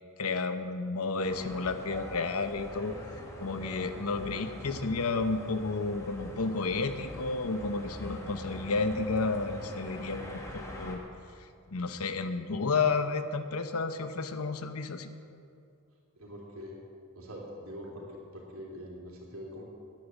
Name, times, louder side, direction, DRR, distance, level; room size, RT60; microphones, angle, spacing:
voice 1, 0.2-2.9 3.4-11.0 11.7-15.1, left 4 dB, 75° left, 9 dB, 0.9 m, -31 dB
sound 1, 1.2-11.0, left 1 dB, 15° left, 1.8 m, -44 dB
voice 2, 16.1-16.7 17.1-19.6, equal, 65° right, -2 dB, 3.3 m, -44 dB
10.5 x 9.5 x 9.4 m, 2.4 s
head